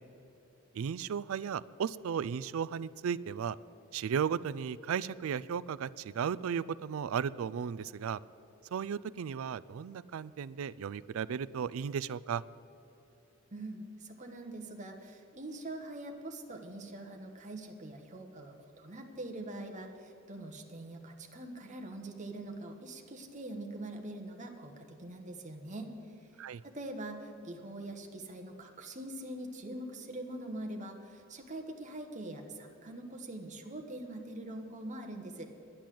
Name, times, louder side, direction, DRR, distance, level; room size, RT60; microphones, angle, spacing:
voice 1, 0.7-3.6 3.9-8.2 8.7-12.4 26.4-26.6, right 7 dB, 75° right, 19 dB, 0.4 m, -35 dB
voice 2, 13.5-25.9 26.6-35.5, right 1 dB, 35° right, 3 dB, 1.2 m, -43 dB
10.5 x 10.0 x 7.6 m, 2.9 s
head